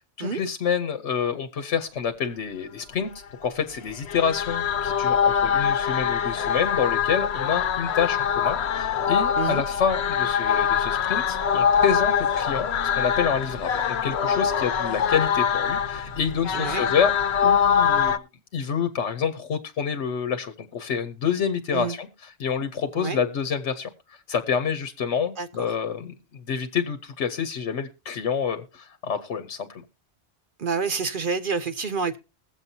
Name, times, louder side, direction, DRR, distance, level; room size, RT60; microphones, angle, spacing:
voice 1, 0.2-3.1 3.4-12.7 13.0-17.1 17.4-18.2 18.5-22.1 22.4-29.8, left 7 dB, 90° left, 1.2 m, -27 dB
sound 1, 3.9-18.2, left 7 dB, 70° left, 1.0 m, -24 dB
voice 2, 16.5-16.8 21.7-22.0 23.0-23.2 25.4-25.5 30.6-32.2, right 5 dB, 55° right, 0.8 m, -28 dB
21.5 x 7.5 x 2.7 m
omnidirectional pair, 1.2 m